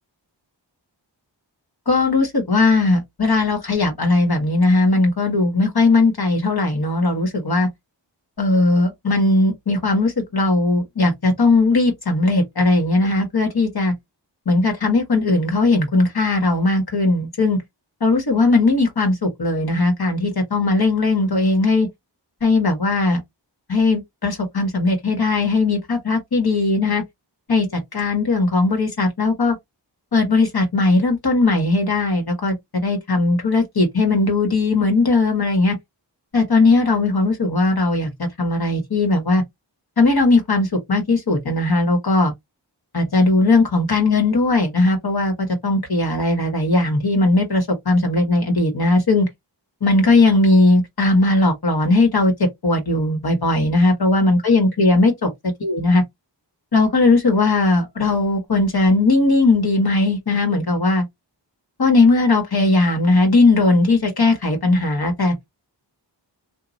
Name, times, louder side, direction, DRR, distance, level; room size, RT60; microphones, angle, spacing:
voice 1, 1.9-7.7 8.4-13.9 14.5-17.6 18.0-21.9 22.4-23.2 23.7-27.0 27.5-29.6 30.1-35.8 36.3-39.4 40.0-42.3 42.9-49.3 49.8-52.3 52.6-55.3 55.6-56.0 56.7-61.0 61.8-65.3, left 2 dB, 60° left, 1.2 m, -18 dB
3.0 x 2.3 x 2.6 m
wide cardioid pair, 45°, 43 cm